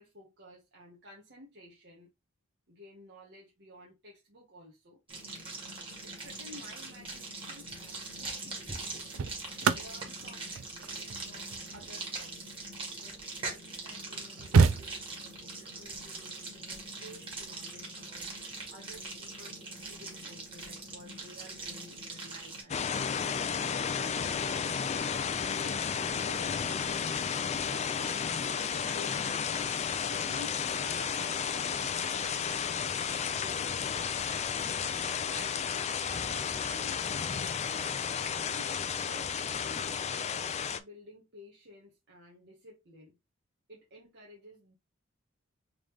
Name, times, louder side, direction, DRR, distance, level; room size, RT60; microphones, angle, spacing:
voice 1, 0.0-2.1 2.7-5.0 5.7-8.9 9.6-12.6 12.9-13.2 13.5-24.4 25.1-29.7 30.1-33.7 35.3-43.2 43.7-44.8, equal, 55° right, 1.3 m, -53 dB
sound 1, 5.1-22.6, right 3 dB, 25° right, 1.8 m, -42 dB
sound 2, 7.5-7.8 8.7-13.3 13.9-14.0 14.2-15.4 17.1-17.3, right 5 dB, 75° right, 0.4 m, -30 dB
sound 3, 22.7-40.8, left 7 dB, 35° left, 0.4 m, -32 dB
3.9 x 3.2 x 3.4 m
head